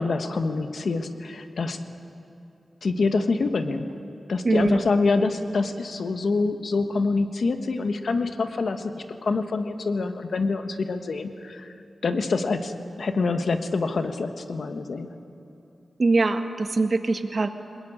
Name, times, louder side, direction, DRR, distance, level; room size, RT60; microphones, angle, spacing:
voice 1, 0.0-1.8 2.8-3.9 4.3-8.9 9.2-11.7 12.0-15.1, left 3 dB, 70° left, 7 dB, 1.4 m, -26 dB
voice 2, 4.4-4.8 16.0-17.5, right 3 dB, 50° right, 7 dB, 1.6 m, -22 dB
22.5 x 20.5 x 9.0 m, 2.8 s
cardioid pair, 55°, 0 cm